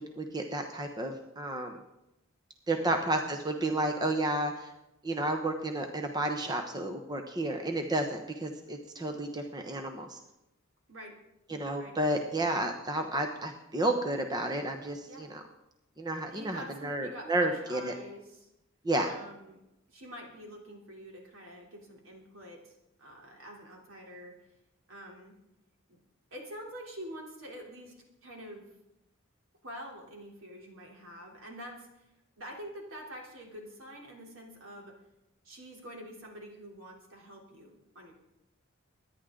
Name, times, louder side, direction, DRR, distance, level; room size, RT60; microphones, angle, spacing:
voice 1, 0.0-1.8 2.7-4.7 5.0-10.2 11.5-15.4 16.0-17.9 18.8-19.1, right 1 dB, 20° right, 4 dB, 1.0 m, -31 dB
voice 2, 16.3-18.5 19.1-19.6 19.9-24.4 24.9-25.4 25.9-26.0 26.3-27.9 28.2-28.7 29.6-32.1 32.4-35.0 35.4-38.1, equal, 70° right, -1 dB, 3.4 m, -46 dB
24.0 x 10.5 x 3.8 m, 0.90 s
head